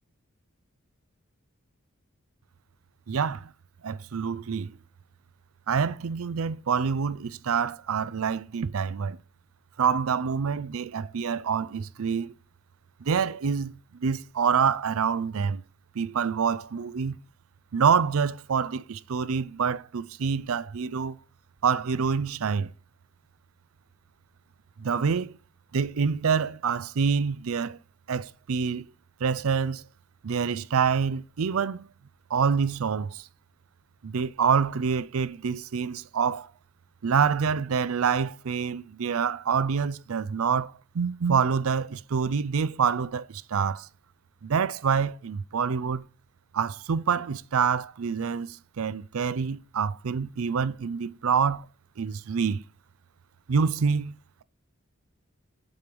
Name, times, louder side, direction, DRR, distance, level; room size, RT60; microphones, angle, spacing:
voice 1, 3.1-3.5 3.8-4.7 5.7-9.2 9.8-12.3 13.0-15.6 16.0-17.2 17.7-21.2 21.6-22.7 24.8-25.3 25.7-27.8 28.1-28.8 29.2-29.8 30.2-31.9 32.3-33.2 34.0-36.5 37.0-43.9 44.4-46.0 46.5-51.6 52.0-52.6 53.5-54.1, right 6 dB, 80° right, 0.5 m, -26 dB
7.8 x 5.3 x 4.6 m
head